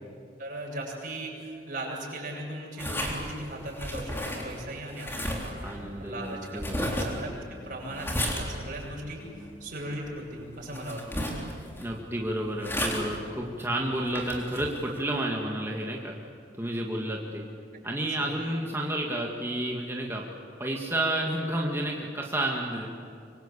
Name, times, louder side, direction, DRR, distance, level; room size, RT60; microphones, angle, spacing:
voice 1, 0.4-5.4 6.0-7.3 7.6-9.2 9.6-11.3 18.2-18.3, right 1 dB, 45° right, -2 dB, 8.0 m, -38 dB
sound 1, 2.8-15.0, equal, 15° left, 3.8 m, -35 dB
voice 2, 5.6-7.0 11.8-16.1 16.6-17.4 17.8-20.2 20.6-22.9, right 1 dB, 15° right, -1 dB, 2.1 m, -31 dB
25.0 x 25.0 x 8.5 m, 2.4 s
head